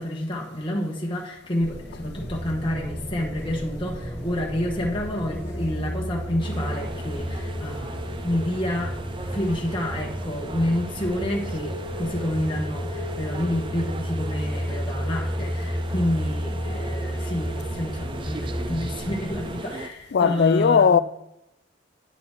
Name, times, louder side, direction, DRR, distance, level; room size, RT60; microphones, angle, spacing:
voice 1, 0.0-9.0 9.3-21.0, left 1 dB, 25° left, 1.2 m, -29 dB
sound 1, 1.6-19.5, equal, 10° right, 2.4 m, -32 dB
sound 2, 6.4-19.9, right 3 dB, 25° right, 0.4 m, -39 dB
voice 2, 20.1-21.0, left 6 dB, 60° left, 0.4 m, -18 dB
9.5 x 6.7 x 3.6 m
head